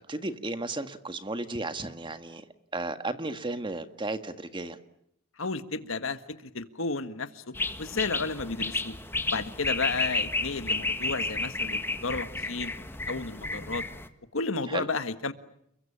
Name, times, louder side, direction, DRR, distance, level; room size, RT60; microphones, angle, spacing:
voice 1, 0.1-2.4 2.7-4.8 14.7-14.9, right 2 dB, 25° right, 9 dB, 1.7 m, -34 dB
voice 2, 5.4-8.9 9.3-13.8 14.3-15.3, left 3 dB, 80° left, 11 dB, 1.7 m, -33 dB
sound 1, 7.5-14.1, left 2 dB, 10° left, 1.6 m, -32 dB
30.0 x 22.5 x 8.7 m, 0.74 s
head